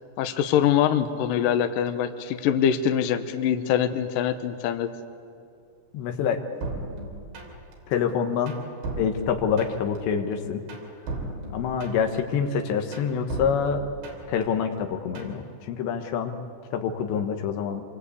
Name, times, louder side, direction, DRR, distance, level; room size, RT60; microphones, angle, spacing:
voice 1, 0.2-4.9, left 9 dB, 70° left, 8 dB, 2.3 m, -24 dB
voice 2, 5.9-6.4 7.9-8.5 9.0-10.6 11.5-13.8 14.3-16.3 16.7-17.8, left 7 dB, 85° left, 5 dB, 3.5 m, -26 dB
sound 1, 6.6-7.7 8.1-10.0 10.3-12.2 12.6-14.4 14.8-15.4, right 2 dB, 85° right, 5.5 m, -36 dB
26.5 x 22.5 x 8.4 m, 2.5 s
omnidirectional pair, 4.9 m